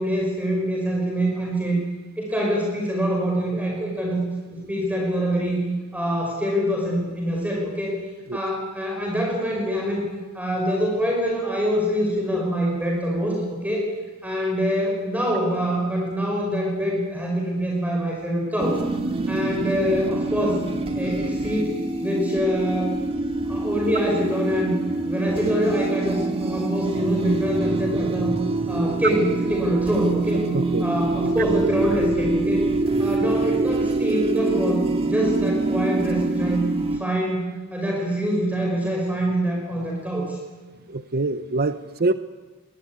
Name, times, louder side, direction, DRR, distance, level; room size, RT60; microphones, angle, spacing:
voice 1, 0.0-1.8 2.2-5.6 5.9-7.9 8.3-10.1 10.3-13.9 14.2-18.8 19.3-20.6 20.9-21.7 22.0-22.9 23.5-24.7 25.1-28.3 28.7-30.4 30.8-32.6 33.0-40.4, equal, 5° right, -1 dB, 5.5 m, -25 dB
sound 1, 18.6-37.0, right 2 dB, 25° right, 2.1 m, -25 dB
voice 2, 30.5-30.8 40.9-42.1, right 3 dB, 45° right, 11 dB, 0.8 m, -24 dB
24.0 x 21.0 x 9.7 m, 1.2 s
head